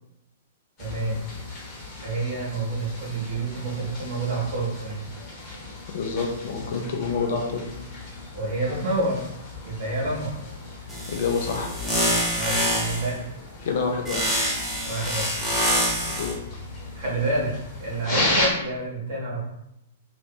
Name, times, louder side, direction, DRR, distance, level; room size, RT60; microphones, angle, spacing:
sound 1, 0.8-18.5, left 2 dB, 30° left, 0.9 m, -35 dB
voice 1, 0.8-1.2 2.0-5.0 8.3-9.3 9.6-10.3 12.3-13.2 14.8-15.3 16.9-17.5 17.8-19.4, right 2 dB, 50° right, -5 dB, 0.8 m, -28 dB
voice 2, 5.9-7.6 11.1-11.7 13.6-14.3 16.2-16.4, left 5 dB, 55° left, 2 dB, 0.4 m, -27 dB
sound 2, 10.9-13.1 14.1-16.3, equal, 5° right, 0.6 m, -26 dB
2.6 x 2.5 x 2.3 m, 0.84 s
figure-of-eight pair, 105°, 0 cm